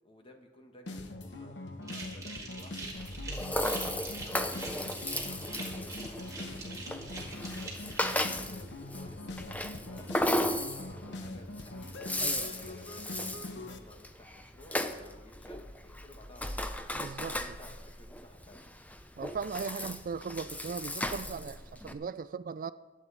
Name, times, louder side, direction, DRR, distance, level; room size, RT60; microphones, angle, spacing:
voice 1, 0.0-3.5 4.2-7.5 8.1-12.0 12.5-16.7 17.4-18.6, left 1 dB, 30° left, 1.7 m, -55 dB
sound 1, 0.9-13.8, left 2 dB, 75° left, 1.1 m, -43 dB
sound 2, 1.8-8.2, right 3 dB, 20° right, 3.3 m, -44 dB
Rattle (instrument), 3.0-21.9, left 1 dB, 10° left, 0.6 m, -36 dB
voice 2, 12.2-12.5 16.9-17.4 19.2-22.7, right 5 dB, 45° right, 0.3 m, -38 dB
23.0 x 8.9 x 4.2 m
head